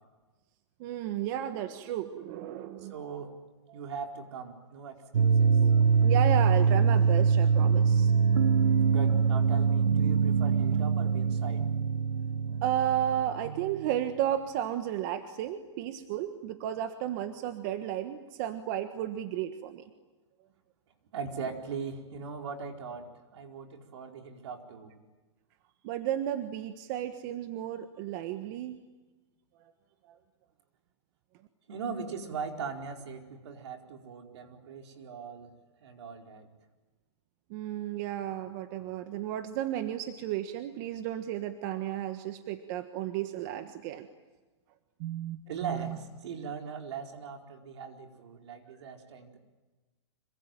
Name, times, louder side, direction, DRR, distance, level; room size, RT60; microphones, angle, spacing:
voice 1, 0.8-2.9 3.7-3.8 6.0-8.1 12.6-19.9 25.8-28.8 30.1-30.2 37.5-44.1 45.0-46.0, right 11 dB, 40° right, 8 dB, 1.4 m, -33 dB
voice 2, 2.8-3.4 3.7-5.6 8.9-11.6 21.1-24.9 31.7-35.5 35.8-36.5 45.5-49.4, right 5 dB, 70° right, 2 dB, 4.6 m, -40 dB
sound 1, 5.1-13.9, right 6 dB, 90° right, 1.0 m, -24 dB
26.5 x 24.0 x 9.2 m, 1.2 s
hypercardioid pair, 150°, 15 cm